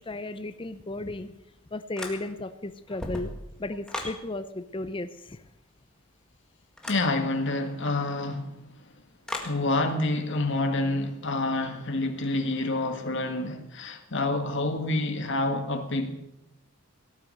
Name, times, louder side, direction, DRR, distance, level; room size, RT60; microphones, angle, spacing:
voice 1, 0.0-1.3 1.7-3.3 3.6-5.4, left 2 dB, 25° left, 0.6 m, -34 dB
sound 1, 2.0-2.5 2.9-4.2 6.8-7.1 9.3-9.6, left 1 dB, 5° left, 1.9 m, -36 dB
voice 2, 6.9-8.6 9.4-16.2, left 2 dB, 55° left, 1.8 m, -28 dB
17.5 x 9.5 x 7.9 m
head